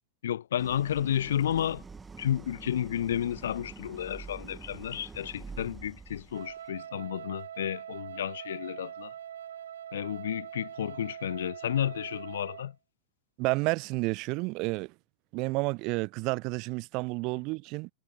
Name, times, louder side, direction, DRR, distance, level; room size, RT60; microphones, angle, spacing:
voice 1, 0.2-1.8 2.2-9.1 9.9-12.7, left 10 dB, 60° left, 0.7 m, -32 dB
Idling, 0.6-6.7, right 4 dB, 15° right, 1.4 m, -46 dB
Wind instrument woodwind instrument, 6.3-12.7, right 9 dB, 65° right, 2.0 m, -43 dB
voice 2, 13.4-14.9 15.3-17.9, right 26 dB, 40° right, 0.6 m, -30 dB
figure-of-eight pair, 90°, 0 cm